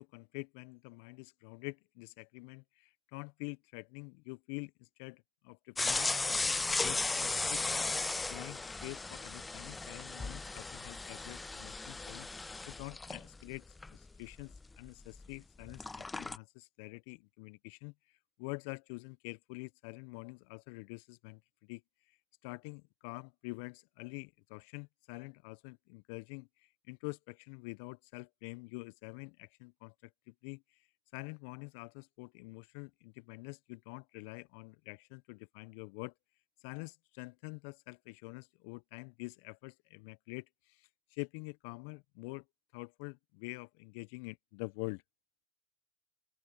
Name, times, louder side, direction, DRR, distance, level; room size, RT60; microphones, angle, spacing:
voice 1, 0.0-7.9 8.3-12.3 12.7-13.6 13.9-17.9 18.4-21.8 22.4-30.8 31.1-36.1 36.6-42.4 42.7-45.0, left 30 dB, 70° left, 1.0 m, -46 dB
sound 1, 5.8-15.3 15.6-16.4, left 3 dB, 15° left, 0.7 m, -36 dB
open air
hypercardioid pair, 65°, 0 cm